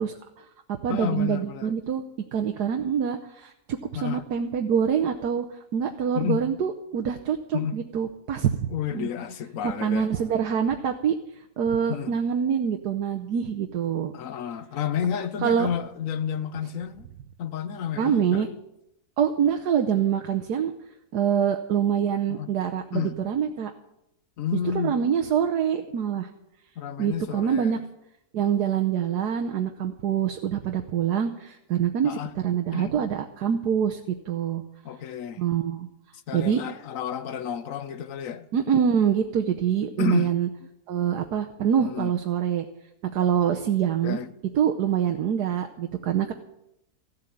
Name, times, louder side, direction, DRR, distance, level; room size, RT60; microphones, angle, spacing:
voice 1, 0.0-2.0 2.3-5.4 5.7-9.1 9.6-11.2 11.6-14.1 15.4-15.7 18.0-18.5 19.2-20.7 21.1-23.7 24.7-26.3 27.0-27.8 28.3-34.6 35.4-35.9 36.3-36.6 38.5-40.5 40.9-42.7 43.0-44.2 44.5-46.3, right 8 dB, 90° right, 1.5 m, -25 dB
voice 2, 0.9-1.7 3.9-4.3 6.1-6.4 7.5-7.8 8.7-10.1 11.9-12.1 14.1-17.1 17.4-18.5 22.3-22.5 22.9-23.2 24.4-25.0 26.8-27.8 32.0-32.3 32.7-32.9 34.8-35.4 36.3-38.5 40.0-40.3 41.8-42.1 44.0-44.3, left 8 dB, 60° left, 1.2 m, -31 dB
15.0 x 8.0 x 9.9 m
omnidirectional pair, 1.7 m